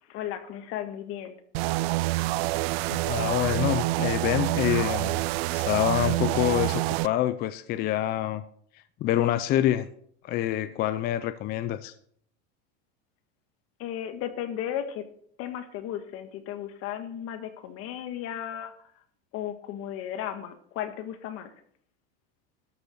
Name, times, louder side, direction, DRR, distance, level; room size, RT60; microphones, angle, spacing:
voice 1, 0.1-1.4 13.8-15.0 15.4-18.7 19.3-21.5, left 10 dB, 45° left, 1.6 m, -35 dB
sound 1, 1.5-7.1, right 19 dB, 70° right, 0.5 m, -27 dB
voice 2, 2.9-5.2 5.5-8.4 9.0-9.9 10.2-11.9, left 12 dB, 30° left, 0.5 m, -26 dB
13.0 x 6.7 x 6.4 m
supercardioid pair, 145°, 32 cm